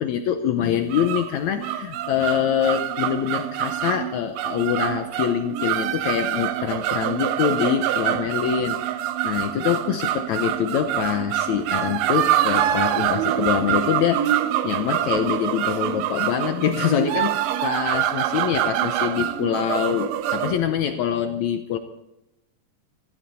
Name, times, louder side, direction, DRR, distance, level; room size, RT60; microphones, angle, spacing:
voice 1, 0.0-21.8, left 9 dB, 70° left, 7 dB, 2.0 m, -25 dB
sound 1, 0.7-20.6, right 12 dB, 75° right, 1.6 m, -25 dB
16.0 x 15.5 x 4.2 m, 0.90 s
omnidirectional pair, 3.7 m